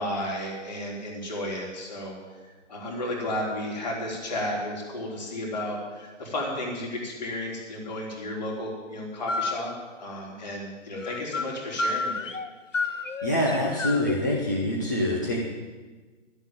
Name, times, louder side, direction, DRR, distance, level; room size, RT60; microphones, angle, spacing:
voice 1, 0.0-2.2 2.7-9.7 10.0-12.3, left 1 dB, 35° left, -1 dB, 3.7 m, -33 dB
sound 1, 9.3-9.6 10.9-11.5 11.8-12.5 12.7-14.2, left 3 dB, 85° left, 1.2 m, -30 dB
voice 2, 13.2-15.4, left 1 dB, 15° left, -3 dB, 0.7 m, -25 dB
12.5 x 8.0 x 8.9 m, 1.3 s
hypercardioid pair, 170°, 37 cm